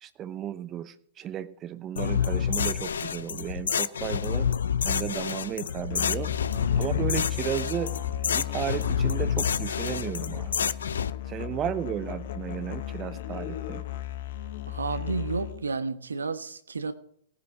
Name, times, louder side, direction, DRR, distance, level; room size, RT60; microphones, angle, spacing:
voice 1, 0.0-4.5 4.8-6.3 6.7-7.9 8.2-10.7 11.3-13.8, right 10 dB, 25° right, 14 dB, 0.8 m, -34 dB
sound 1, 2.0-11.1, left 7 dB, 75° left, 0.6 m, -28 dB
Musical instrument, 5.9-15.7, left 12 dB, 60° left, 1.3 m, -35 dB
voice 2, 14.7-16.9, right 4 dB, 90° right, 11 dB, 1.1 m, -31 dB
17.5 x 9.7 x 4.8 m, 0.65 s
hypercardioid pair, 120°, 0 cm